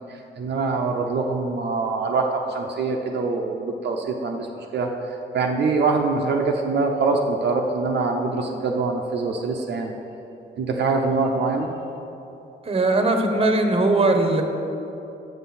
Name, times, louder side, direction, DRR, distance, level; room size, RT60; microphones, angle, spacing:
voice 1, 0.0-4.5 4.7-9.9 10.6-11.7, right 3 dB, 60° right, 1 dB, 0.7 m, -24 dB
voice 2, 12.7-14.4, right 2 dB, 30° right, 5 dB, 0.9 m, -19 dB
7.1 x 5.7 x 5.8 m, 3.0 s
cardioid pair, 75°, 19 cm